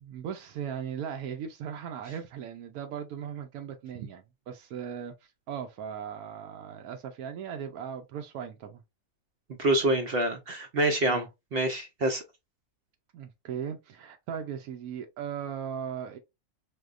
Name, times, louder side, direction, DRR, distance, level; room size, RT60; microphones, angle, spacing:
voice 1, 0.0-8.8 11.1-11.3 13.1-16.2, right 8 dB, 85° right, 1.1 m, -38 dB
voice 2, 9.6-11.2 11.5-12.2, right 1 dB, 65° right, 0.6 m, -26 dB
4.8 x 2.2 x 2.4 m
omnidirectional pair, 1.5 m